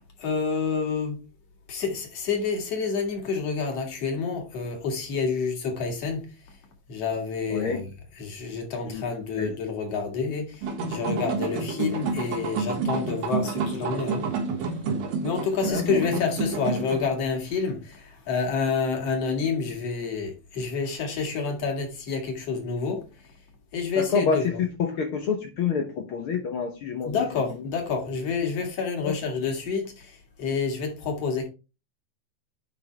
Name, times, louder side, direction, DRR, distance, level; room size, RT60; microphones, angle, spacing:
voice 1, 0.2-1.2 1.7-6.3 6.9-14.2 15.2-23.0 23.7-24.6 27.0-31.5, left 5 dB, 50° left, 2.9 m, -28 dB
voice 2, 7.5-7.8 8.8-9.0 9.4-9.5 15.7-15.8 24.0-27.3 29.0-29.1, left 6 dB, 90° left, 1.2 m, -27 dB
sound 1, 10.6-17.1, right 4 dB, 90° right, 3.4 m, -29 dB
9.9 x 4.9 x 3.4 m
omnidirectional pair, 4.0 m